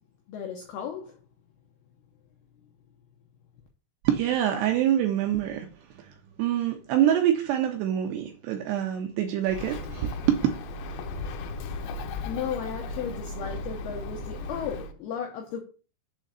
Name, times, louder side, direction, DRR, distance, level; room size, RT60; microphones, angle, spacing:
voice 1, 0.3-1.2 12.0-15.6, left 8 dB, 75° left, 2.5 m, -35 dB
voice 2, 4.0-5.7 6.4-10.4, right 11 dB, 80° right, 2.6 m, -25 dB
Bird, 9.5-14.9, left 2 dB, 90° left, 2.1 m, -36 dB
7.5 x 3.8 x 6.7 m
omnidirectional pair, 5.5 m